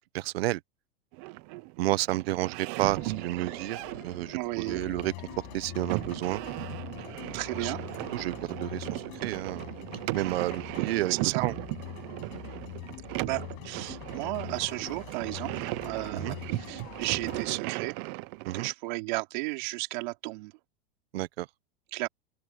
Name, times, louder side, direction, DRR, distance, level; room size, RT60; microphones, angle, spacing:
voice 1, 0.1-0.6 1.8-3.8 4.0-5.1 5.5-6.4 7.6-7.7 8.1-9.7 10.1-11.1 11.4-11.5 16.1-16.3 18.4-18.7 21.1-21.5, right 16 dB, 85° right, 0.9 m, -31 dB
sound 1, 1.1-18.7, right 22 dB, 30° right, 0.4 m, -37 dB
sound 2, 2.9-10.5, left 15 dB, 70° left, 3.7 m, -53 dB
voice 2, 4.3-4.8 7.3-7.8 11.1-11.5 13.2-18.0 18.5-20.5 21.9-22.1, right 23 dB, 50° right, 3.7 m, -33 dB
sound 3, 4.6-17.6, left 30 dB, 40° left, 6.3 m, -44 dB
open air
supercardioid pair, 175°, 30 cm